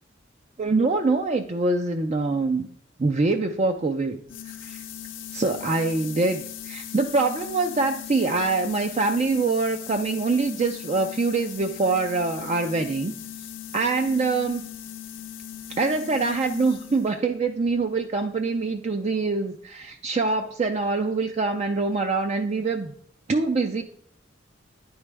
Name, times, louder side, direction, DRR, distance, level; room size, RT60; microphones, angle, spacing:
voice 1, 0.6-2.7 3.0-4.8 5.3-13.1 13.7-14.7 15.7-22.9 23.3-23.8, right 3 dB, 35° right, 5 dB, 0.4 m, -24 dB
sound 1, 4.3-17.2, left 10 dB, 80° left, 0.7 m, -39 dB
10.0 x 4.7 x 3.2 m, 0.67 s
head